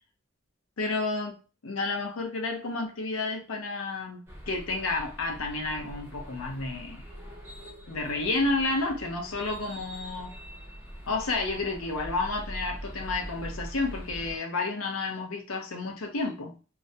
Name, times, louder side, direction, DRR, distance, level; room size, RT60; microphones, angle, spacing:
voice 1, 0.8-1.4 1.6-7.0 7.9-10.3 11.1-16.5, left 3 dB, 75° left, 0.5 m, -31 dB
sound 1, 4.3-14.4, equal, 10° right, 0.5 m, -43 dB
2.3 x 2.1 x 2.6 m
head